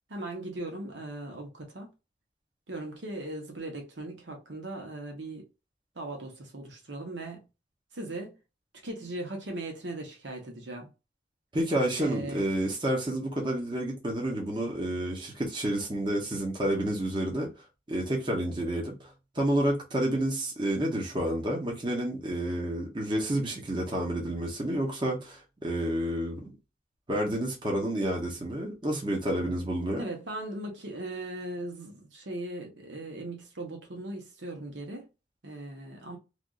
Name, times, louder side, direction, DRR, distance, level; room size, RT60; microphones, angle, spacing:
voice 1, 0.1-1.9 2.7-5.5 6.0-7.5 7.9-8.3 8.8-10.9 12.0-12.5 29.9-35.1 35.4-36.2, right 2 dB, 85° right, 1.1 m, -38 dB
voice 2, 11.5-17.5 17.9-19.1 19.3-26.4 27.1-30.0, right 1 dB, 25° right, 0.9 m, -29 dB
3.4 x 2.6 x 2.4 m
head